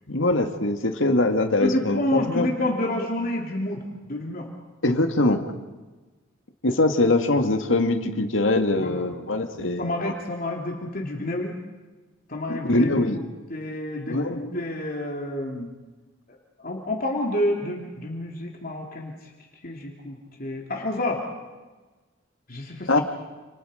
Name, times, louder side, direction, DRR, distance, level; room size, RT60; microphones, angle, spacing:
voice 1, 0.1-2.5 4.8-5.4 6.6-10.1 12.5-13.2 14.1-14.6 22.9-23.0, left 2 dB, 75° left, 6 dB, 2.1 m, -23 dB
voice 2, 1.6-4.5 8.8-9.0 9.8-11.5 12.3-15.7 16.6-19.1 19.6-21.2 22.5-22.9, left 1 dB, 45° left, 0 dB, 3.0 m, -29 dB
29.5 x 28.5 x 5.1 m, 1.2 s
head